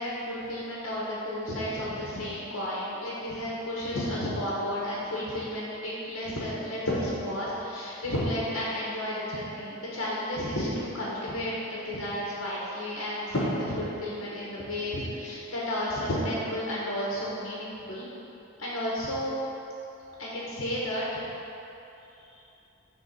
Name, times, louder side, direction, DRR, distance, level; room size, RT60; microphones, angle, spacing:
voice 1, 0.0-18.1 18.6-19.3 20.2-21.1 22.3-22.4, left 1 dB, 65° left, -7 dB, 1.2 m, -32 dB
6.9 x 3.3 x 6.0 m, 3.0 s
head